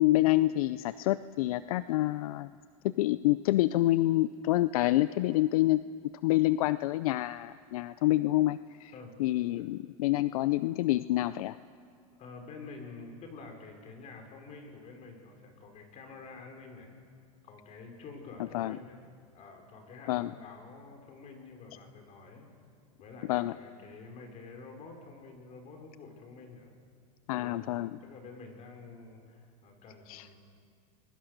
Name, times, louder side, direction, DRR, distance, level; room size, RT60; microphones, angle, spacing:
voice 1, 0.0-2.5 2.8-5.8 6.2-8.9 9.2-11.6 18.5-18.8 20.1-20.3 23.3-23.5 27.3-28.0 30.1-30.3, left 16 dB, 75° left, 16 dB, 0.5 m, -27 dB
voice 2, 12.2-16.9 17.4-19.0 19.3-22.5 23.0-26.7 27.4-30.4, left 4 dB, 35° left, 3 dB, 5.0 m, -48 dB
29.0 x 22.0 x 6.6 m, 2.2 s
supercardioid pair, 125°, 19 cm